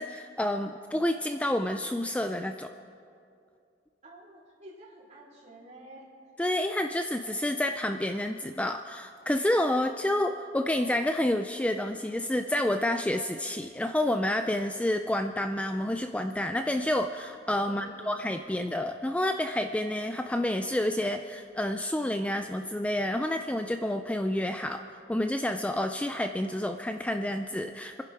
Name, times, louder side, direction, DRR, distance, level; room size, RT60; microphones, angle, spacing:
voice 1, 0.0-2.7 6.4-28.0, left 1 dB, 5° left, 6 dB, 0.4 m, -29 dB
voice 2, 4.0-6.1 17.6-18.2, right 1 dB, 40° right, -6 dB, 3.9 m, -50 dB
28.0 x 10.5 x 4.6 m, 2.4 s
head